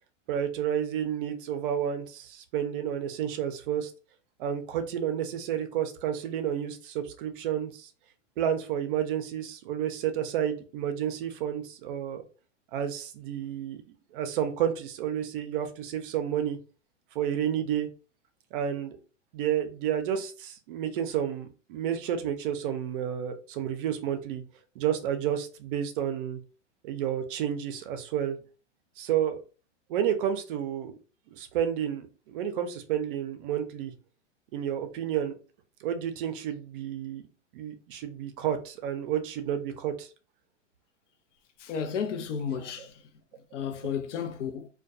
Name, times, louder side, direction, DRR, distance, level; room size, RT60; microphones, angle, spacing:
voice 1, 0.3-3.9 4.4-7.9 8.4-12.2 12.7-13.8 14.1-16.6 17.1-17.9 18.5-19.0 19.3-24.4 24.8-26.4 26.8-28.4 29.0-29.4 29.9-30.9 31.3-33.9 34.5-35.3 35.8-37.2 37.5-40.1 42.8-42.9, right 9 dB, 45° right, 0.5 m, -30 dB
voice 2, 41.6-42.9 43.5-44.7, left 7 dB, 75° left, 0.6 m, -32 dB
2.3 x 2.2 x 2.6 m
hypercardioid pair, 125°, 37 cm